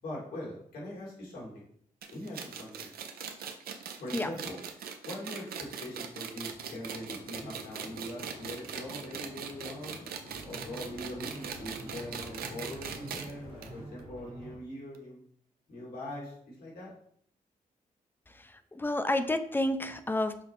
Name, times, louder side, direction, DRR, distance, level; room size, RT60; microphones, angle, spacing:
voice 1, 0.0-1.7 2.1-2.9 4.0-4.6 5.0-10.0 10.4-15.2 15.7-16.9, left 1 dB, 90° left, -5 dB, 2.0 m, -42 dB
sound 1, 2.0-13.3 13.6-13.7 14.0-14.1 14.9-15.0, right 7 dB, 85° right, 0.5 m, -40 dB
sound 2, 6.1-13.9, left 2 dB, 65° left, 1.3 m, -52 dB
sound 3, 10.3-14.6, right 1 dB, 50° right, 1.5 m, -48 dB
voice 2, 18.3-20.4, left 1 dB, 15° left, 10 dB, 0.4 m, -30 dB
6.0 x 2.0 x 4.3 m, 0.65 s
cardioid pair, 85°, 15 cm